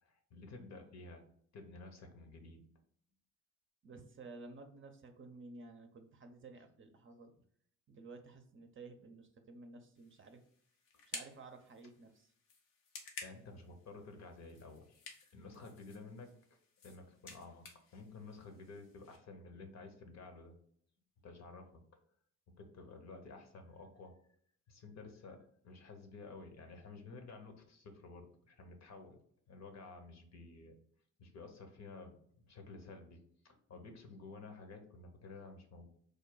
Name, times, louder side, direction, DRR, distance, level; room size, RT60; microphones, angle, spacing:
voice 1, 0.0-1.3 1.5-2.6 13.2-15.0 15.3-16.3 16.8-17.7 17.9-20.5 21.2-21.8 22.5-24.2 24.7-29.2 29.5-30.8 31.2-35.9, left 3 dB, 50° left, 5 dB, 0.9 m, -52 dB
voice 2, 3.8-7.3 7.9-10.4 11.0-12.3, right 3 dB, 35° right, 6 dB, 0.6 m, -53 dB
sound 1, 9.9-19.2, left 4 dB, 80° left, 0.8 m, -54 dB
3.3 x 2.2 x 3.9 m, 0.63 s
hypercardioid pair, 55°, 33 cm